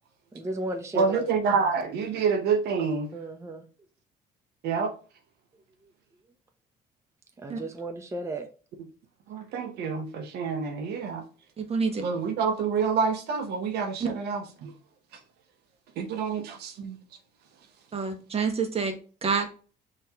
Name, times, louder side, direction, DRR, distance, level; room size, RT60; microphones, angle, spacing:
voice 1, 0.3-1.3 3.1-3.6 7.4-8.5, right 2 dB, 15° right, 0.7 m, -34 dB
voice 2, 0.9-3.1 4.6-4.9 9.3-11.2 12.0-14.7 16.0-17.0, right 5 dB, 75° right, 0.9 m, -27 dB
voice 3, 11.6-12.0 14.0-14.1 17.9-19.5, right 5 dB, 35° right, 1.3 m, -28 dB
5.8 x 3.1 x 2.9 m
cardioid pair, 110°, 17 cm